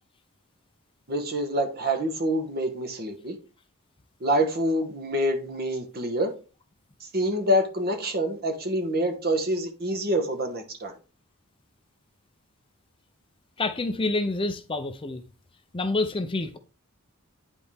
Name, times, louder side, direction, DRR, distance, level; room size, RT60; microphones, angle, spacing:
voice 1, 1.1-3.4 4.2-6.3 7.0-10.9, equal, 45° right, 1.4 m, -26 dB
voice 2, 13.6-15.2 15.7-16.6, left 2 dB, 25° left, 0.6 m, -27 dB
9.8 x 4.1 x 3.5 m
head